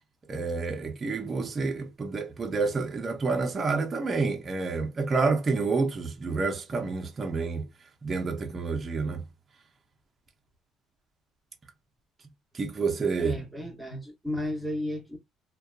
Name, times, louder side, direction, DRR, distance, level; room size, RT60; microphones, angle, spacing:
voice 1, 0.3-7.7 8.0-9.3 12.5-13.4, right 4 dB, 30° right, 0.6 m, -29 dB
voice 2, 13.2-15.2, left 1 dB, ahead, 0.9 m, -33 dB
2.6 x 2.2 x 2.3 m
cardioid pair, 120°, 0 cm